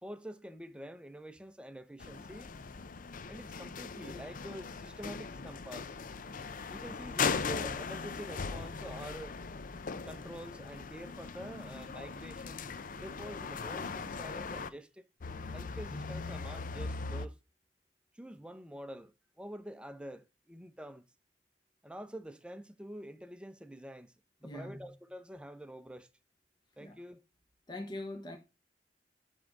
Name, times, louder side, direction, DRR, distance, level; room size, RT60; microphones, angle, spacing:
voice 1, 0.0-2.5 3.3-6.0 6.7-9.4 10.0-15.0 15.5-17.4 18.1-21.0 21.8-24.1 24.4-26.1 26.8-27.2, equal, 5° right, 0.7 m, -47 dB
sound 1, 2.0-14.7 15.2-17.3, left 5 dB, 50° left, 0.6 m, -39 dB
voice 2, 24.4-24.8 26.8-27.0 27.7-28.4, left 1 dB, 25° left, 1.1 m, -42 dB
10.5 x 3.7 x 7.2 m
head